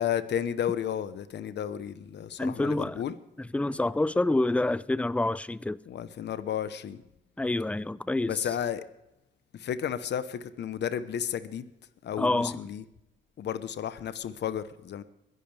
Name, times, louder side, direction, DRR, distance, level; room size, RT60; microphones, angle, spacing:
voice 1, 0.0-3.2 5.9-7.0 8.3-8.8 9.5-11.7 12.0-12.8 13.4-15.0, left 9 dB, 60° left, 1.0 m, -32 dB
voice 2, 2.4-3.0 3.5-5.8 7.4-8.3 12.2-12.6, left 2 dB, 5° left, 0.5 m, -27 dB
22.0 x 11.0 x 3.4 m
cardioid pair, 90°, 20 cm